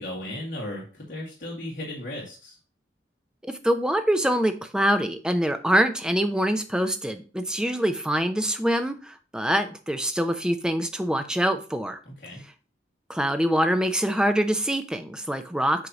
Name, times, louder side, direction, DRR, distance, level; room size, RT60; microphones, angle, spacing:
voice 1, 0.0-2.6 12.1-12.4, left 1 dB, 45° left, -5 dB, 1.8 m, -36 dB
voice 2, 3.5-12.0 13.1-15.9, equal, 5° right, 8 dB, 0.6 m, -24 dB
8.0 x 2.8 x 5.9 m, 0.36 s
head